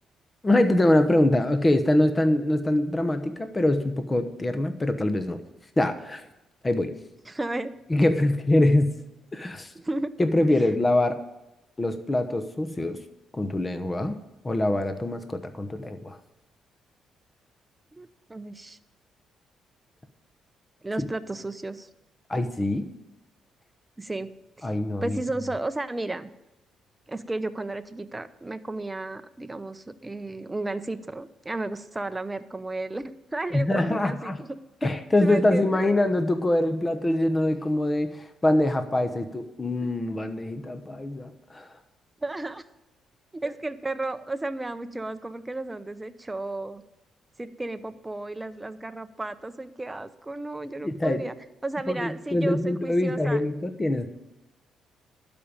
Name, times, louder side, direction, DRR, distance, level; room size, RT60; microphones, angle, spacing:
voice 1, 0.4-5.4 5.8-6.2 6.6-6.9 7.9-8.9 9.3-9.7 10.2-11.2 11.8-13.0 13.3-14.2 14.4-16.2 22.3-22.9 24.6-25.2 33.5-34.4 34.8-41.7 50.8-51.2 51.9-54.1, left 1 dB, 20° left, 8 dB, 1.0 m, -24 dB
voice 2, 7.3-8.0 9.7-10.1 17.9-18.8 20.8-21.9 24.0-24.3 24.6-24.7 25.0-26.3 27.1-34.6 35.2-35.8 39.8-39.9 42.2-42.7 43.3-46.8 47.4-51.3 51.6-53.4, right 2 dB, 15° right, 11 dB, 0.7 m, -33 dB
12.0 x 5.2 x 8.9 m, 0.96 s
cardioid pair, 80°, 0 cm